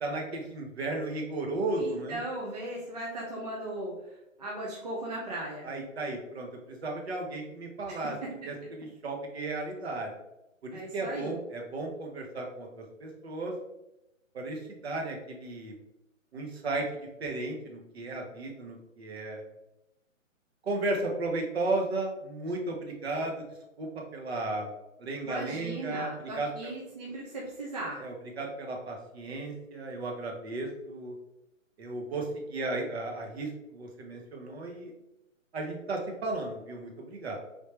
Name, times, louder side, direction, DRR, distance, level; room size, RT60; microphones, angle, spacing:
voice 1, 0.0-2.2 5.6-8.2 8.4-10.1 10.6-13.5 14.3-15.8 16.3-19.4 20.6-23.5 23.8-24.7 25.0-26.7 28.0-31.1 31.8-34.9 35.5-37.4, right 2 dB, 50° right, 1 dB, 0.9 m, -34 dB
voice 2, 1.7-5.7 7.9-8.7 10.7-11.3 25.2-28.0, right 2 dB, 30° right, -4 dB, 0.5 m, -38 dB
3.4 x 2.6 x 3.1 m, 0.89 s
hypercardioid pair, 150°, 40 cm